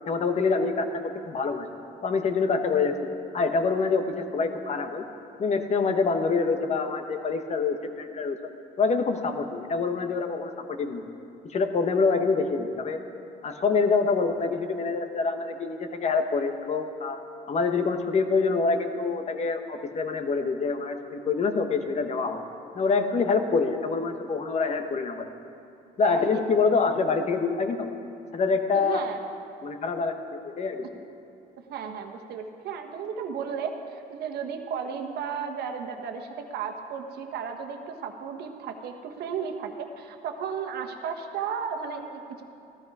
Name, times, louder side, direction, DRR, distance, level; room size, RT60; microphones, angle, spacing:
voice 1, 0.1-1.7 2.0-2.9 3.3-5.0 5.4-8.4 8.8-11.0 11.5-13.0 13.4-17.2 17.5-22.4 22.7-25.3 26.0-27.9 28.3-29.0 29.6-30.8, left 4 dB, 40° left, 7 dB, 1.1 m, -26 dB
voice 2, 26.0-26.4 28.7-29.2 31.6-42.4, right 6 dB, 70° right, 5 dB, 1.2 m, -34 dB
14.5 x 13.0 x 4.8 m, 2.7 s
cardioid pair, 110°, 17 cm